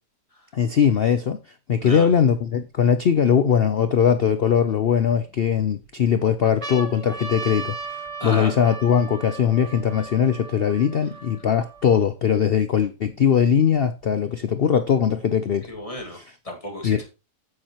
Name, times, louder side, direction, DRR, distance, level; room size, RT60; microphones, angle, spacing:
voice 1, 0.5-1.4 1.7-15.7 16.1-16.2 16.8-17.0, left 8 dB, 80° left, 0.5 m, -20 dB
sound 1, 2.1-2.2 2.9-4.1 4.9-5.6 6.1-6.2 6.4-12.1 12.8-12.9 13.0-14.0 15.0-16.0, right 4 dB, 20° right, 1.2 m, -37 dB
voice 2, 8.2-8.5 15.7-17.0, left 1 dB, 20° left, 2.1 m, -33 dB
8.6 x 8.6 x 3.0 m
omnidirectional pair, 1.8 m